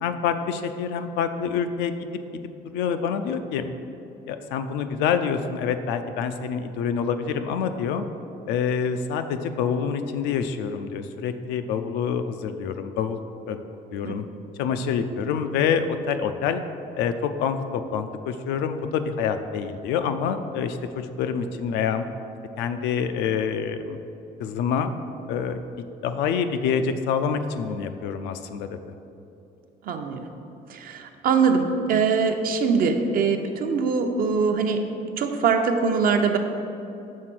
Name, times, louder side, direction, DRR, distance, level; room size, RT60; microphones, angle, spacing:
voice 1, 0.0-2.1 2.7-3.7 4.3-8.1 8.5-13.2 13.5-13.6 13.9-14.2 14.6-16.6 17.0-22.0 22.6-24.0 24.4-24.9 25.3-25.6 26.0-28.8, left 7 dB, 90° left, 8 dB, 0.4 m, -26 dB
voice 2, 29.8-30.2 30.7-34.9 35.2-36.4, right 5 dB, 60° right, 5 dB, 0.6 m, -22 dB
6.4 x 3.7 x 6.0 m, 2.8 s
cardioid pair, 110°, 17 cm